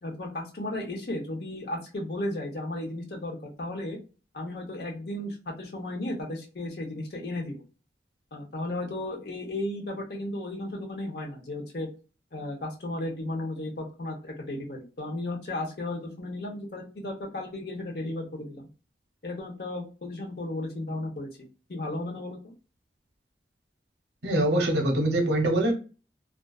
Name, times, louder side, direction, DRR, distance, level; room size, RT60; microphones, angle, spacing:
voice 1, 0.0-4.0 4.3-7.6 8.3-11.9 12.3-18.7 19.2-22.5, left 1 dB, 60° left, 0 dB, 0.7 m, -34 dB
voice 2, 24.2-25.7, right 1 dB, 80° right, 2 dB, 0.7 m, -23 dB
2.4 x 2.2 x 2.3 m, 0.33 s
head